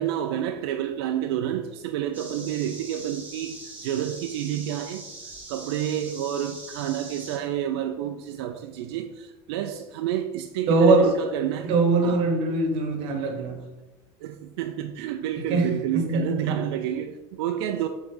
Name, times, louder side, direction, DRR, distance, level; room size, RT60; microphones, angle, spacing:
voice 1, 0.0-5.1 5.5-11.7 12.0-12.2 14.2-17.9, right 11 dB, 80° right, 0.5 m, -29 dB
sound 1, 2.1-7.4, right 2 dB, 15° right, 1.3 m, -42 dB
voice 2, 10.7-11.1 11.6-13.6 15.4-16.6, right 3 dB, 45° right, 1.1 m, -22 dB
7.6 x 3.7 x 3.8 m
cardioid pair, 175°, 13 cm